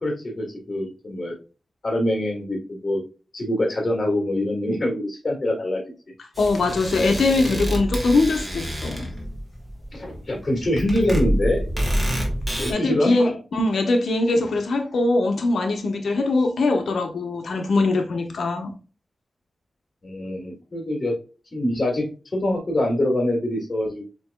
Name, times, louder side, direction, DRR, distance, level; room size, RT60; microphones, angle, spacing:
voice 1, 0.0-1.3 1.8-3.0 3.3-5.8 7.3-7.7 9.9-12.0 12.6-13.2 20.0-21.1 21.5-22.1 22.3-24.0, left 1 dB, 30° left, 1.9 m, -24 dB
voice 2, 6.4-9.1 12.7-18.7, left 2 dB, 80° left, 0.9 m, -22 dB
sound 1, 6.4-12.7, equal, 15° right, 1.4 m, -27 dB
7.3 x 3.1 x 2.2 m
wide cardioid pair, 165°, 0 cm